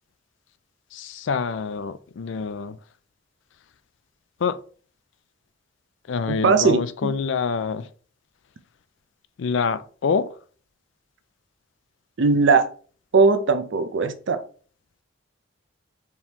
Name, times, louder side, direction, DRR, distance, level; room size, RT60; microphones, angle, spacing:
voice 1, 0.9-2.8 4.4-4.6 6.1-7.9 9.4-10.3, left 5 dB, 65° left, 0.4 m, -26 dB
voice 2, 6.3-7.1 12.2-12.7 13.1-14.4, right 4 dB, 60° right, 0.5 m, -19 dB
4.5 x 3.5 x 2.9 m
head